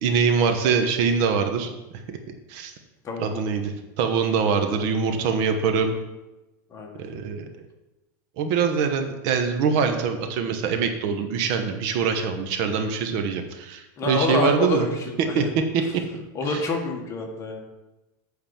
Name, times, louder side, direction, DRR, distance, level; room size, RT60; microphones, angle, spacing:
voice 1, 0.0-1.7 2.1-2.2 2.5-2.7 3.2-5.9 7.0-7.5 8.4-14.9 15.2-15.4 16.5-16.6, right 6 dB, 50° right, 6 dB, 1.0 m, -23 dB
voice 2, 3.0-3.5 6.7-7.0 14.0-15.5 16.3-17.6, left 3 dB, 25° left, 2 dB, 1.4 m, -27 dB
8.9 x 4.0 x 7.1 m, 1.0 s
supercardioid pair, 145°, 11 cm